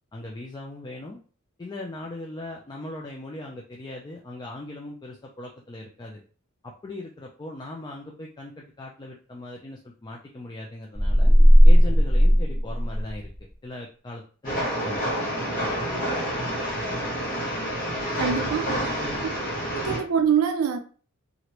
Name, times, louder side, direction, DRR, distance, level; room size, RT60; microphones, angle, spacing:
voice 1, 0.1-1.2 1.6-6.2 6.6-11.3 11.6-13.3 13.6-14.6 14.8-15.0 18.8-19.3, left 2 dB, 20° left, 0.3 m, -39 dB
sound 1, 10.9-13.4, equal, 10° right, 1.4 m, -15 dB
Train, 14.4-20.0, equal, 40° left, 1.1 m, -28 dB
voice 2, 18.2-18.8 19.7-20.8, right 7 dB, 65° right, 0.4 m, -24 dB
3.0 x 2.5 x 2.9 m
head